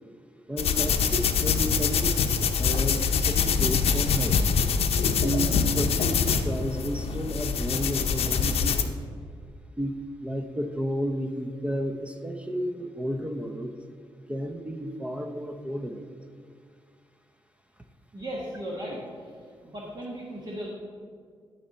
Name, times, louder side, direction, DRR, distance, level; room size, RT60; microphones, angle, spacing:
voice 1, 0.5-4.4 5.1-8.9 9.8-13.7 14.3-16.2, equal, 10° right, 6 dB, 0.6 m, -32 dB
sound 1, 0.6-8.8, left 6 dB, 75° left, 0.7 m, -24 dB
voice 2, 18.1-19.2 19.6-20.7, equal, 45° right, -4 dB, 1.5 m, -36 dB
11.5 x 4.4 x 5.1 m, 2.1 s
cardioid pair, 85°, 10 cm